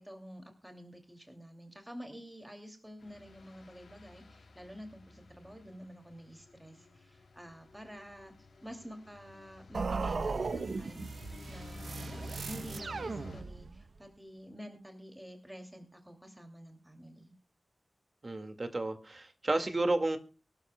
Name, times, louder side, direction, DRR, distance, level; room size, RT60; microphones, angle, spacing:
voice 1, 0.0-8.3 8.6-17.3, equal, 10° right, 2.6 m, -49 dB
sound 1, 3.0-13.4, left 2 dB, 90° left, 3.2 m, -51 dB
sound 2, 9.7-13.9, right 4 dB, 75° right, 0.8 m, -37 dB
voice 2, 18.2-20.2, right 2 dB, 40° right, 2.0 m, -31 dB
23.5 x 12.5 x 2.3 m
wide cardioid pair, 105°, 0 cm